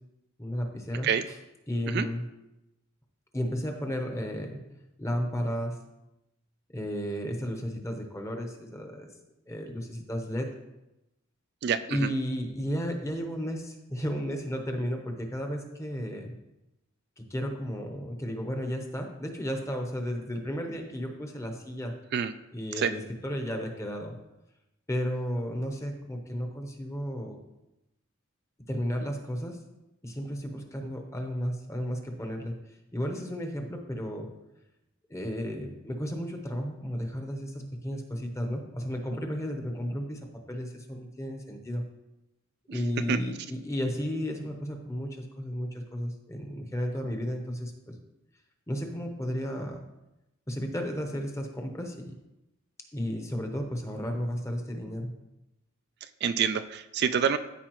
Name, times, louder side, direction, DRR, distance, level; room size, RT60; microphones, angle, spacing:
voice 1, 0.4-1.1 1.7-2.2 3.3-4.6 5.0-5.8 6.7-9.1 9.5-10.5 11.9-16.3 17.2-21.9 22.5-24.1 24.9-27.4 28.7-29.6 30.0-32.6 32.9-34.3 35.1-40.2 40.5-41.8 42.7-47.9 48.7-49.8 50.5-52.1 52.9-55.1, equal, 15° left, 3 dB, 0.9 m, -33 dB
voice 2, 11.6-12.1 22.1-22.3 22.7-22.9 42.7-42.8 43.1-43.2 56.0-57.4, right 7 dB, 50° right, 10 dB, 0.3 m, -27 dB
13.5 x 4.7 x 3.0 m, 0.94 s
head